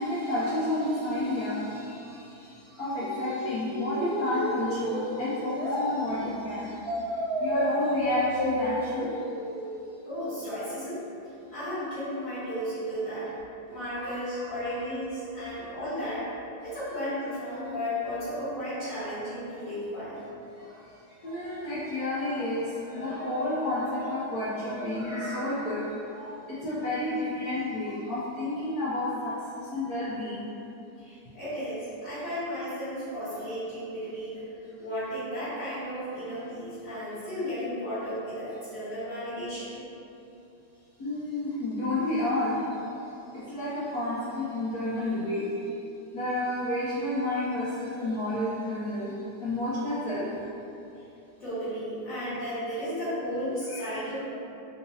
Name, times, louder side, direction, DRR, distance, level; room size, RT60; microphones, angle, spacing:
voice 1, 0.0-7.1 7.4-9.3 13.9-14.8 15.5-15.6 20.1-20.2 20.5-30.5 41.0-45.4 46.1-49.1 49.4-50.3 53.7-54.1, left 1 dB, 80° left, -10 dB, 0.8 m, -31 dB
sound 1, 3.0-5.8 6.8-9.9, equal, 5° left, 0.3 m, -32 dB
voice 2, 10.0-11.0 11.5-13.3 13.7-16.3 16.6-20.2 31.0-34.5 34.8-39.8 51.4-54.1, equal, 40° left, -15 dB, 1.9 m, -34 dB
3.7 x 2.7 x 2.7 m, 2.8 s
omnidirectional pair, 2.3 m